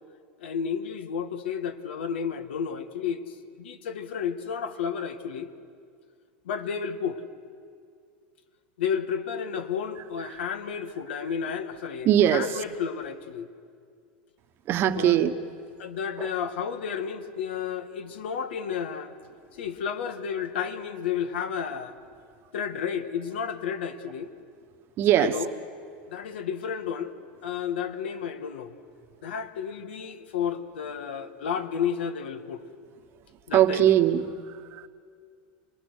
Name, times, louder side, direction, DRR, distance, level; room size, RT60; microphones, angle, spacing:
voice 1, 0.4-5.5 6.4-7.2 8.8-13.5 14.9-15.2 15.8-19.2 19.5-22.0 22.5-24.3 25.2-25.5 26.1-27.1 27.4-28.7 29.2-32.6 33.5-33.9, left 7 dB, 90° left, 8 dB, 1.7 m, -32 dB
voice 2, 12.0-12.6 14.7-15.4 16.2-16.3 25.0-25.4 33.5-34.9, right 11 dB, 40° right, 9 dB, 1.2 m, -22 dB
27.5 x 20.5 x 6.4 m, 2.2 s
supercardioid pair, 125°, 6 cm